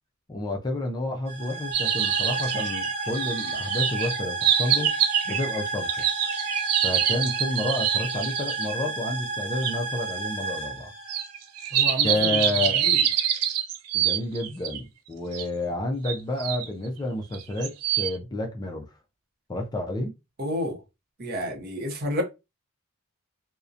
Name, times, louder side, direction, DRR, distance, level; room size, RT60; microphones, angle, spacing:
voice 1, 0.3-5.0 5.3-6.1 6.8-10.9 12.0-12.9 13.9-18.9 19.5-20.1, left 2 dB, 20° left, 0.3 m, -30 dB
sound 1, 1.3-11.8, right 3 dB, 25° right, 1.3 m, -32 dB
sound 2, 1.7-8.7 9.6-9.7 11.1-14.8 15.3-15.4 16.0-16.7 17.3-18.1, right 10 dB, 85° right, 0.4 m, -25 dB
Wind instrument woodwind instrument, 1.8-7.7, left 3 dB, 40° left, 1.0 m, -41 dB
voice 2, 11.7-12.4 12.8-13.0 20.4-20.8 21.2-22.2, left 1 dB, 45° right, 0.6 m, -30 dB
2.6 x 2.1 x 2.4 m
head